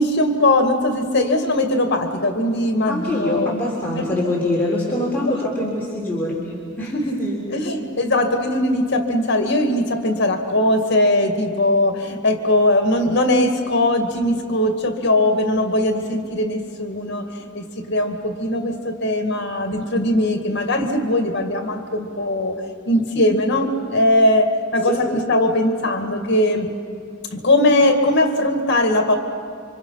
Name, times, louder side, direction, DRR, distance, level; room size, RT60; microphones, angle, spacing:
voice 1, 0.0-3.5 4.0-4.1 6.8-7.2 7.5-17.2 17.6-22.6 22.9-26.7 27.3-29.2, left 1 dB, 60° left, 5 dB, 2.1 m, -20 dB
voice 2, 2.9-7.4 24.9-25.0, left 1 dB, 10° left, -6 dB, 3.7 m, -24 dB
29.5 x 25.5 x 5.7 m, 2.4 s
head